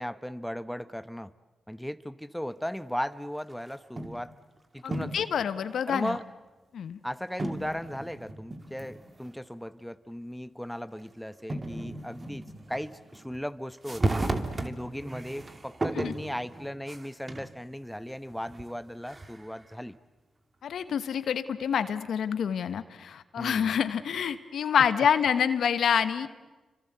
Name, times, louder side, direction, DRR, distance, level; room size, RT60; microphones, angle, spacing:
voice 1, 0.0-1.3 1.7-4.3 4.7-5.3 5.9-6.2 7.0-14.3 14.6-20.0 23.4-23.8, equal, 5° left, 14 dB, 1.0 m, -37 dB
sound 1, 3.5-4.3 4.8-5.3 6.1-6.2 7.4-9.4 9.7-9.8 11.0-11.1 11.5-13.4 13.8-17.5 18.1-19.6, right 2 dB, 35° right, 2.7 m, -35 dB
voice 2, 4.8-6.2 6.7-7.0 15.9-16.1 20.6-26.3, left 8 dB, 75° left, 12 dB, 1.2 m, -27 dB
29.0 x 25.0 x 8.1 m, 1.2 s
supercardioid pair, 40°, 0 cm